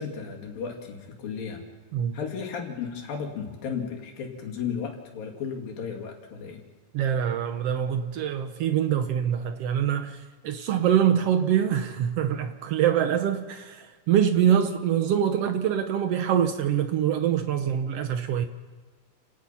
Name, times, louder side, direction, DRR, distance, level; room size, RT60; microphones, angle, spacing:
voice 1, 0.0-1.6 2.1-6.6, left 6 dB, 85° left, 4.3 m, -34 dB
voice 2, 6.9-10.2 10.4-18.5, right 9 dB, 90° right, 1.3 m, -24 dB
30.0 x 18.5 x 5.7 m
omnidirectional pair, 4.0 m